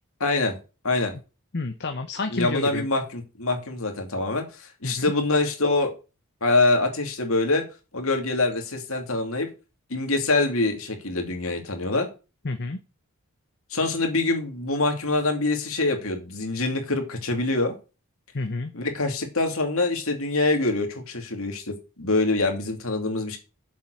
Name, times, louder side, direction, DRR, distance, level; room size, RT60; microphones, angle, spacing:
voice 1, 0.2-0.5 0.8-1.1 2.3-5.9 6.4-7.6 7.9-9.5 9.9-12.1 13.7-17.7 18.7-23.4, left 2 dB, 65° left, 4 dB, 2.7 m, -25 dB
voice 2, 1.5-2.9 4.8-5.1 12.4-12.8 18.3-18.7, left 3 dB, 50° left, 7 dB, 0.9 m, -29 dB
7.6 x 7.3 x 6.3 m, 0.31 s
head